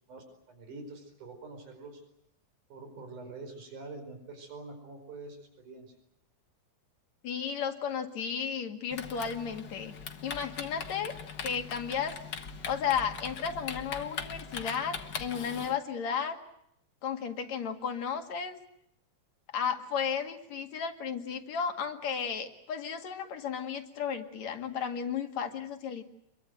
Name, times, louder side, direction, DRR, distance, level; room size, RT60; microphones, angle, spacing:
voice 1, 0.1-2.0 2.7-5.9, right 3 dB, 85° right, 6 dB, 6.2 m, -45 dB
voice 2, 7.2-9.9 10.2-11.1 11.4-12.1 12.7-16.4 17.0-18.6 19.5-26.0, left 7 dB, 65° left, 5 dB, 3.3 m, -33 dB
Typing, 8.9-15.7, left 6 dB, 45° left, 1.8 m, -41 dB
27.0 x 23.0 x 7.9 m, 0.77 s
omnidirectional pair, 3.5 m